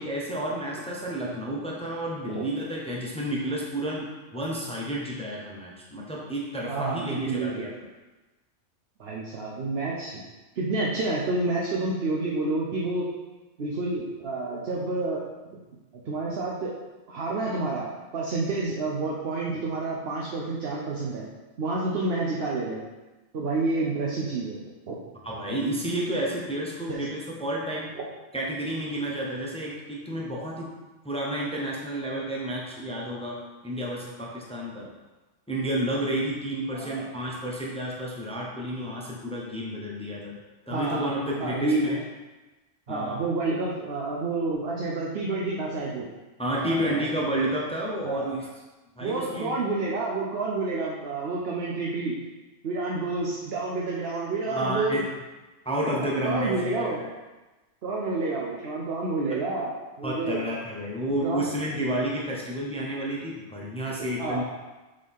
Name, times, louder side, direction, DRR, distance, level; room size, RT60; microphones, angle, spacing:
voice 1, 0.0-7.7 25.2-27.9 28.3-30.7 31.0-34.9 35.5-40.4 40.7-42.0 42.9-43.2 46.4-48.5 49.0-49.6 54.5-55.1 55.6-57.1 60.0-64.5, right 1 dB, 5° left, -3 dB, 0.8 m, -31 dB
voice 2, 6.7-7.7 9.0-10.2 10.6-13.1 13.6-15.2 15.5-15.6 16.1-16.8 17.1-17.9 18.1-21.3 21.6-22.8 23.3-25.0 26.9-27.0 28.0-28.1 36.7-37.1 40.7-41.1 41.4-42.0 42.9-46.1 46.6-47.1 48.0-48.3 49.0-52.2 52.6-55.0 55.9-57.0 57.8-60.5 61.2-61.4 64.2-64.5, right 3 dB, 55° right, -4 dB, 1.0 m, -29 dB
6.6 x 4.0 x 3.6 m, 1.1 s
omnidirectional pair, 1.3 m